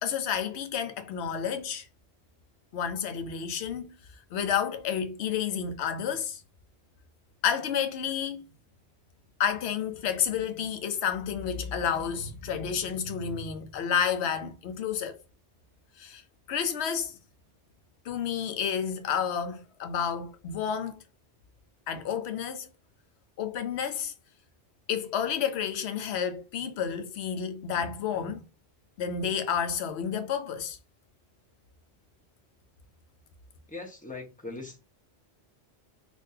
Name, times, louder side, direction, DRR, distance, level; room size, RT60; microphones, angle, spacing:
voice 1, 0.0-1.9 2.7-3.9 4.3-6.4 7.4-8.4 9.4-15.2 16.0-16.2 16.5-17.2 18.0-21.0 21.9-22.7 23.4-24.1 24.9-28.4 29.0-30.8, left 8 dB, 70° left, 0.9 m, -30 dB
voice 2, 33.7-34.8, left 3 dB, 10° left, 0.7 m, -40 dB
3.6 x 2.6 x 2.7 m
omnidirectional pair, 1.2 m